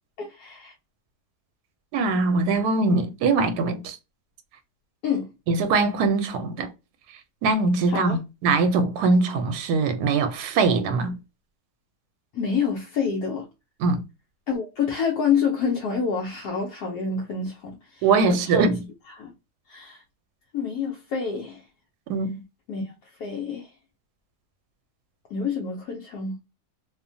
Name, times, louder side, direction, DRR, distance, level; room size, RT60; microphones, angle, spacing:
voice 1, 0.2-0.7 5.0-5.3 7.9-8.2 12.3-13.5 14.5-18.7 19.1-19.3 19.7-20.0 20.5-21.6 22.7-22.9 23.2-23.7 25.3-26.4, left 6 dB, 75° left, 1.1 m, -27 dB
voice 2, 1.9-4.0 5.5-6.7 7.4-11.2 13.8-14.0 18.0-18.8 22.1-22.4, right 4 dB, 80° right, 1.1 m, -22 dB
2.9 x 2.1 x 2.5 m
omnidirectional pair, 1.7 m